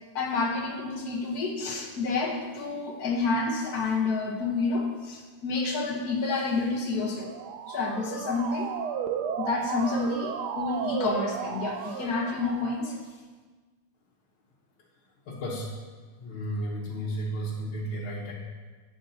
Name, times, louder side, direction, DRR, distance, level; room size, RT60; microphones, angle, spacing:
voice 1, 0.1-7.3 7.7-8.7 9.4-13.0, left 3 dB, 55° left, 1 dB, 1.5 m, -29 dB
Motor vehicle (road) / Siren, 7.1-13.0, right 7 dB, 70° right, 1.1 m, -34 dB
voice 2, 15.3-15.7 16.2-18.3, right 1 dB, 85° left, -6 dB, 2.0 m, -33 dB
11.5 x 8.9 x 2.8 m, 1.4 s
omnidirectional pair, 2.2 m